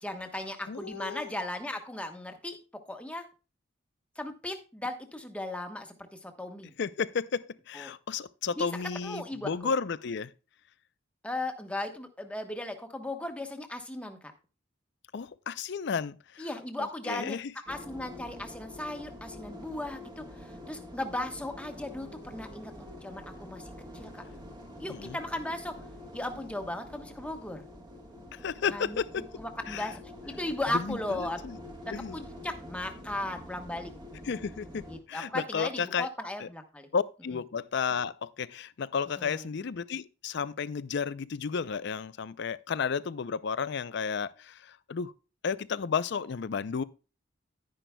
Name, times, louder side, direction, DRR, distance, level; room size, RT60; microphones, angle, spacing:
voice 1, 0.0-2.6 2.9-3.2 4.2-6.7 7.7-7.9 8.6-8.7 9.0-9.7 11.2-14.2 16.4-17.4 17.7-24.2 24.8-25.7 26.1-27.6 28.7-29.0 29.4-31.4 32.1-33.9 34.9-36.9 39.2-39.5, left 1 dB, 5° left, 1.0 m, -37 dB
voice 2, 0.7-1.3 6.8-10.3 15.1-16.5 16.8-17.5 24.9-25.2 28.3-29.3 29.7-29.9 30.7-31.6 31.9-32.2 34.2-36.1 36.4-36.5 36.9-45.1 45.4-46.8, left 6 dB, 60° left, 0.4 m, -33 dB
sound 1, 17.7-35.0, left 1 dB, 20° right, 1.3 m, -46 dB
10.5 x 10.0 x 2.2 m
head